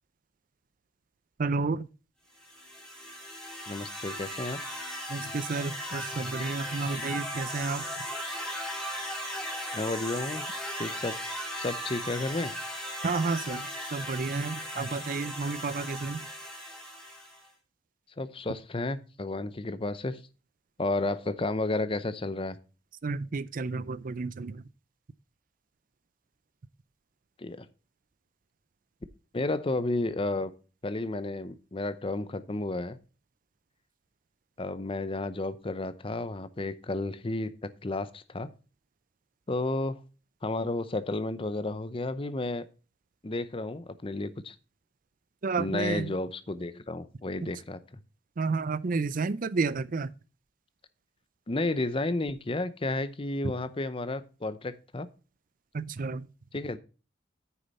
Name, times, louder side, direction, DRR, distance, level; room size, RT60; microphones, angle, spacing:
voice 1, 1.4-1.9 5.1-7.9 13.0-16.2 23.0-24.6 45.4-46.1 47.4-47.5 48.4-50.1 55.7-56.3, right 4 dB, 45° right, 0.5 m, -31 dB
sound 1, 2.4-17.5, equal, 5° left, 3.5 m, -37 dB
voice 2, 3.7-4.6 9.7-10.4 10.8-11.2 11.6-12.5 18.2-20.2 20.8-22.6 27.4-27.7 29.3-30.5 30.8-33.0 34.6-38.5 39.5-40.0 40.4-42.6 43.2-44.6 45.6-47.8 51.5-55.1 56.5-56.8, left 2 dB, 30° left, 0.7 m, -32 dB
9.4 x 6.8 x 4.2 m
head